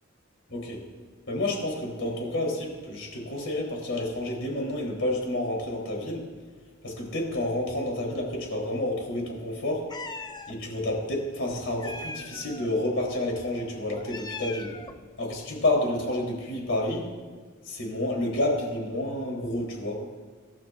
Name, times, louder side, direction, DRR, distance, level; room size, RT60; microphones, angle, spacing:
voice 1, 0.5-0.8 1.3-6.2 6.8-9.9 10.5-14.8 15.2-17.1 17.7-20.0, left 1 dB, 65° left, -2 dB, 3.8 m, -29 dB
Meow, 9.9-10.5 11.8-12.7 13.9-15.0, left 3 dB, 20° left, 0.6 m, -39 dB
25.5 x 12.0 x 2.6 m, 1.4 s
head